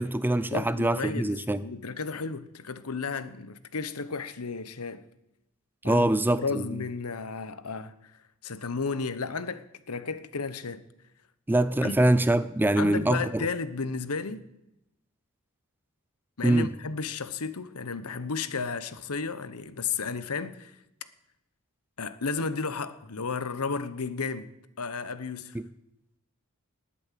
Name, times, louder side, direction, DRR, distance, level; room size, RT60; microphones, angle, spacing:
voice 1, 0.0-1.6 5.8-6.6 11.5-13.5 16.4-16.7 25.5-25.6, right 1 dB, 10° right, 0.4 m, -24 dB
voice 2, 0.5-5.1 5.8-6.1 6.4-7.9 8.4-10.8 11.8-12.0 12.8-14.4 16.4-20.7 22.0-24.5 24.8-25.6, left 4 dB, 75° left, 1.0 m, -33 dB
19.0 x 8.7 x 7.5 m
head